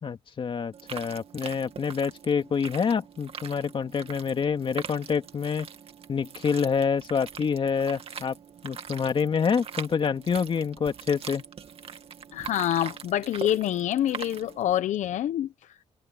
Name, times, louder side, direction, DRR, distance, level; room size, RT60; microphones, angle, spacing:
voice 1, 0.0-5.7 6.1-8.4 8.6-11.4, left 6 dB, 40° left, 2.4 m, -27 dB
sound 1, 0.7-14.8, right 7 dB, 50° right, 2.3 m, -42 dB
voice 2, 12.3-15.8, left 11 dB, 70° left, 1.0 m, -27 dB
cardioid pair, 90°, 13 cm